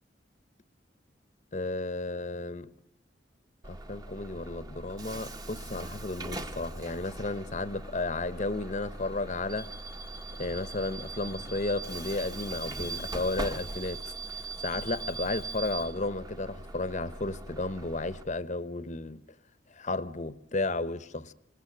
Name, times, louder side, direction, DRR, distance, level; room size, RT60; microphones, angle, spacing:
voice 1, 1.5-2.7 3.7-9.7 10.4-19.2 19.7-21.3, left 2 dB, 40° left, 1.0 m, -33 dB
Bus / Alarm, 3.6-18.2, right 2 dB, 20° right, 1.3 m, -40 dB
28.0 x 20.0 x 8.9 m
head